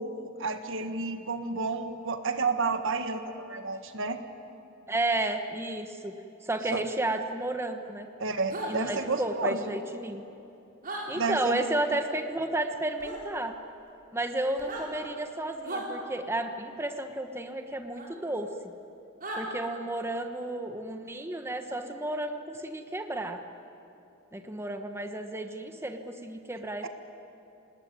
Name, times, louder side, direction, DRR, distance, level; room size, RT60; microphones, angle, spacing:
voice 1, 0.0-4.2 6.7-6.8 8.2-9.6 11.1-11.7 26.8-26.9, right 4 dB, 65° right, 7 dB, 1.7 m, -31 dB
voice 2, 4.9-6.1 6.4-8.1 8.7-10.2 11.1-13.5 14.1-18.5 19.4-23.4 24.3-26.9, right 1 dB, 10° right, 6 dB, 1.2 m, -32 dB
sound 1, 8.5-8.7 10.8-11.0 13.0-13.2 14.5-14.9 15.6-15.9 17.9-18.1 19.2-19.4, right 2 dB, 45° right, 5.8 m, -36 dB
27.0 x 19.5 x 9.6 m, 2.9 s
head